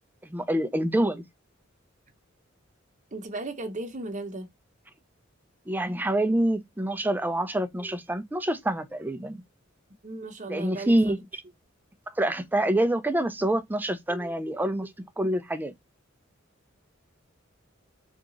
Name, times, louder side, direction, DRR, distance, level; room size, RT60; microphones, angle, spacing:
voice 1, 0.2-1.2 5.7-9.4 10.5-11.2 12.1-15.7, right 1 dB, 10° right, 0.5 m, -26 dB
voice 2, 3.1-4.5 10.0-10.9 12.6-12.7, right 2 dB, 40° right, 0.8 m, -35 dB
3.6 x 2.9 x 3.8 m
head